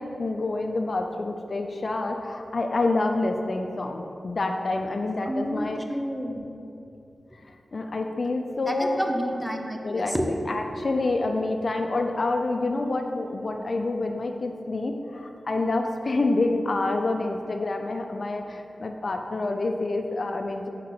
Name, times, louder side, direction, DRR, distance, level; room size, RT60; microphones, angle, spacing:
voice 1, 0.0-5.8 7.5-9.0 9.8-10.1 10.5-20.7, left 2 dB, 60° left, 4 dB, 0.4 m, -27 dB
voice 2, 5.3-6.5 8.6-10.3, equal, ahead, 3 dB, 0.7 m, -30 dB
5.5 x 3.7 x 5.9 m, 2.6 s
cardioid pair, 45°, 0 cm